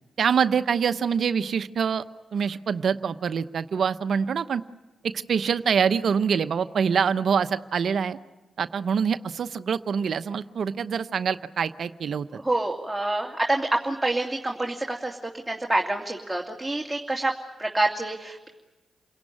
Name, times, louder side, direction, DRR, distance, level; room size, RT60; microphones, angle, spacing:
voice 1, 0.2-2.0 2.3-4.6 5.3-8.2 8.6-12.3, right 6 dB, 65° right, 12 dB, 0.8 m, -25 dB
voice 2, 12.3-15.2 15.5-17.3 17.6-18.5, right 2 dB, 10° right, 0 dB, 2.5 m, -27 dB
29.0 x 18.0 x 9.9 m, 1.1 s
supercardioid pair, 45°, 0 cm